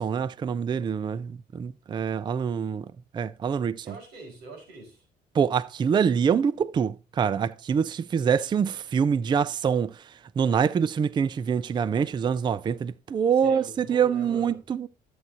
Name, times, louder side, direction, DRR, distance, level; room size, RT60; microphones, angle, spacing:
voice 1, 0.0-2.9 3.1-3.9 5.3-9.9 10.4-14.9, right 7 dB, 25° right, 0.4 m, -25 dB
voice 2, 3.8-5.0 13.3-14.6, right 3 dB, 80° right, 5.0 m, -43 dB
12.5 x 7.8 x 2.8 m
cardioid pair, 110°, 17 cm